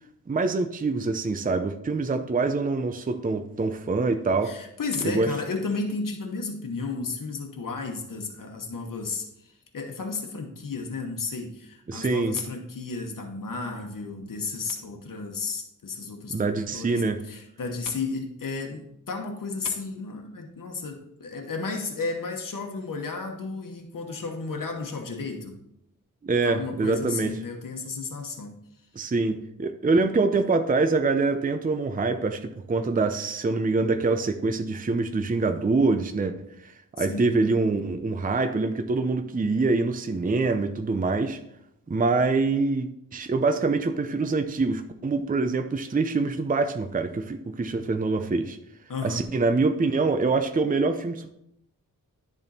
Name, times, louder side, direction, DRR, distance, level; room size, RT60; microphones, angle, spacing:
voice 1, 0.3-4.5 5.0-5.3 11.9-12.4 16.3-17.2 26.2-27.3 29.0-36.3 36.6-36.7 37.0-41.4 41.9-48.6 49.0-51.3, right 3 dB, 25° right, 7 dB, 0.5 m, -25 dB
voice 2, 4.4-25.6 26.4-28.6 37.0-37.4 48.9-49.2, left 4 dB, 70° left, 2 dB, 1.1 m, -33 dB
10.0 x 3.6 x 4.1 m, 0.79 s
wide cardioid pair, 70°, 34 cm